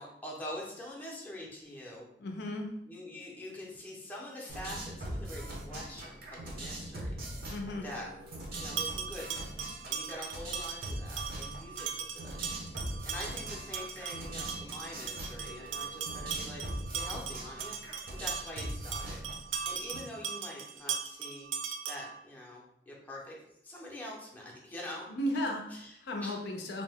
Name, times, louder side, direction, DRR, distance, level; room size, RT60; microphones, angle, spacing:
voice 1, 0.0-2.1 2.9-7.1 7.8-8.1 8.5-9.5 9.9-12.4 12.8-16.6 16.9-17.8 18.1-19.2 19.7-21.5 21.9-25.1 25.7-25.9 26.2-26.4, left 1 dB, 10° left, -4 dB, 0.6 m, -45 dB
voice 2, 2.2-2.8 7.5-7.9 25.1-26.8, left 1 dB, 60° left, 2 dB, 0.4 m, -35 dB
sound 1, 4.5-20.0, right 1 dB, 55° right, 0.7 m, -41 dB
sound 2, 8.5-22.2, right 7 dB, 85° right, 0.3 m, -39 dB
2.6 x 2.1 x 3.4 m, 0.76 s
head